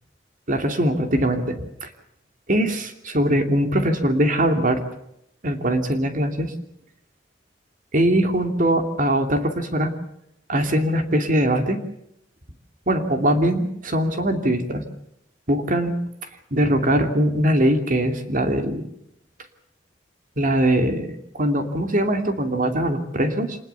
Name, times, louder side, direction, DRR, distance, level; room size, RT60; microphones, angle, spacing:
voice 1, 0.5-1.9 2.5-4.8 5.4-6.5 7.9-9.9 10.5-11.8 12.9-14.8 15.5-16.0 16.5-18.8 20.4-23.6, right 1 dB, 50° right, 6 dB, 2.8 m, -21 dB
26.5 x 20.0 x 7.0 m, 0.77 s
head